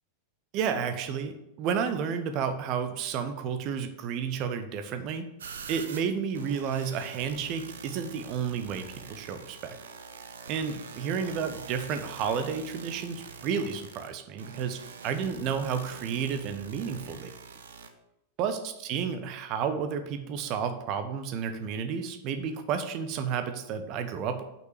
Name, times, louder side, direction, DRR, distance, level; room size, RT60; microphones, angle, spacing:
voice 1, 0.5-5.2 5.7-9.8 10.5-17.3 18.4-24.4, right 7 dB, 40° right, 9 dB, 1.0 m, -31 dB
sound 1, 5.4-17.9, right 5 dB, 65° right, 0.8 m, -44 dB
6.0 x 5.8 x 6.7 m, 0.87 s
figure-of-eight pair, 90°, 0 cm